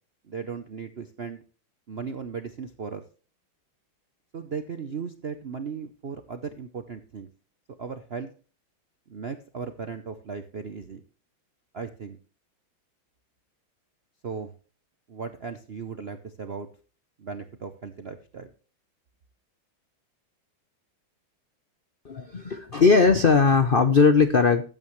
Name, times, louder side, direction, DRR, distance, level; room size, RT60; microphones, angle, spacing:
voice 1, 0.3-1.4 1.9-3.0 4.3-7.3 7.8-8.3 9.1-11.0 11.7-12.2 14.2-14.5 15.1-16.7 17.2-18.5, right 5 dB, 65° right, 8 dB, 0.6 m, -36 dB
voice 2, 22.0-24.7, left 4 dB, 85° left, 9 dB, 0.4 m, -19 dB
14.5 x 9.1 x 3.2 m, 0.37 s
omnidirectional pair, 2.2 m